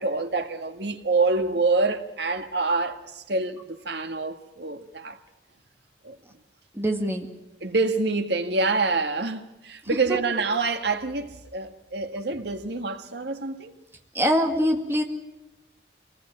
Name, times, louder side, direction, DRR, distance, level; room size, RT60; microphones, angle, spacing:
voice 1, 0.0-5.2 6.0-6.2 7.6-13.7, right 3 dB, 65° right, 1.8 m, -26 dB
voice 2, 6.7-7.3 10.1-10.2 14.1-15.0, equal, 15° right, 2.1 m, -23 dB
26.0 x 19.5 x 8.8 m
head